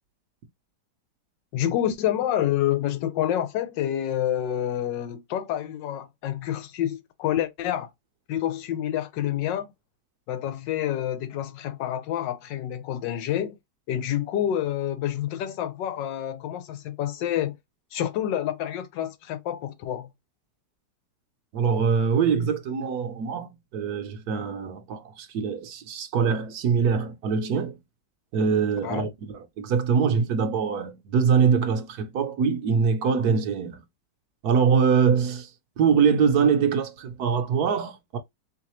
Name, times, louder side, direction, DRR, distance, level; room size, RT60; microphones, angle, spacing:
voice 1, 1.5-7.9 8.3-9.7 10.3-13.6 13.9-17.6 17.9-20.1 28.8-29.1, left 11 dB, 90° left, 1.3 m, -28 dB
voice 2, 21.5-27.8 28.3-33.8 34.4-35.5 35.8-38.2, right 6 dB, 65° right, 1.1 m, -23 dB
3.7 x 3.1 x 3.0 m
omnidirectional pair, 1.9 m